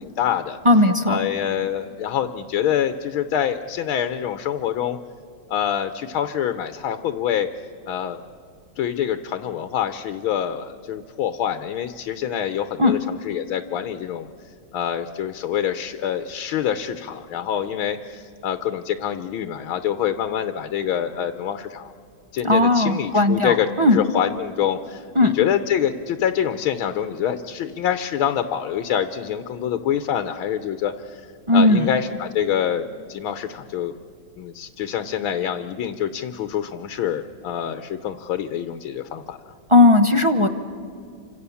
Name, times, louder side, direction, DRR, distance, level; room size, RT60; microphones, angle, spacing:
voice 1, 0.0-0.6 1.1-5.0 5.5-7.5 7.9-8.2 8.8-14.3 14.7-21.9 22.3-31.3 31.5-33.9 34.4-39.4, left 9 dB, 85° left, 9 dB, 1.7 m, -26 dB
voice 2, 0.6-1.2 12.8-13.0 22.4-24.0 25.1-25.4 31.5-31.9 39.7-40.5, left 2 dB, 40° right, 8 dB, 0.4 m, -16 dB
29.0 x 26.0 x 7.0 m, 2.4 s
omnidirectional pair, 2.2 m